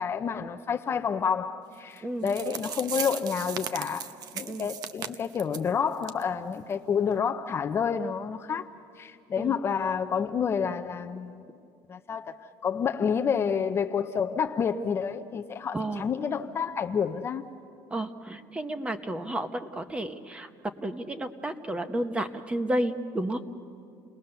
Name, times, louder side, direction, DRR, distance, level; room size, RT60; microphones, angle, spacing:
voice 1, 0.0-4.1 4.3-8.7 9.0-11.4 11.9-12.3 12.6-17.4, left 6 dB, 30° left, 6 dB, 0.6 m, -29 dB
sound 1, 2.0-2.1 2.3-5.7 6.0-6.2 6.5-6.6 7.1-7.2, right 8 dB, 50° right, 0.8 m, -37 dB
voice 2, 15.7-16.1 17.9-20.5 20.8-23.4, right 1 dB, 10° right, 9 dB, 0.9 m, -31 dB
29.5 x 19.5 x 6.8 m, 2.5 s
cardioid pair, 150°, 9 cm